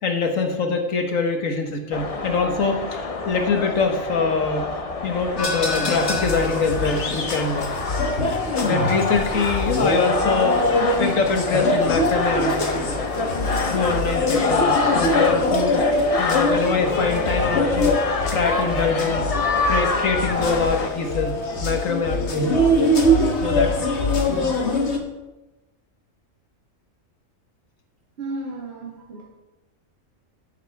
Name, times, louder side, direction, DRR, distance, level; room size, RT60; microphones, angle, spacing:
voice 1, 0.0-4.7 5.0-7.7 8.6-10.6 11.0-12.7 13.7-15.9 16.2-18.0 18.3-19.3 19.7-21.3 21.6-22.7 23.4-23.9, left 4 dB, 80° left, 4 dB, 1.8 m, -24 dB
sound 1, 1.9-20.9, left 3 dB, 30° left, 0.8 m, -26 dB
sound 2, 5.4-25.0, left 1 dB, 55° left, 1.6 m, -23 dB
voice 2, 28.2-29.3, right 2 dB, 55° right, -2 dB, 1.9 m, -33 dB
12.5 x 11.0 x 3.5 m, 1.1 s
omnidirectional pair, 1.4 m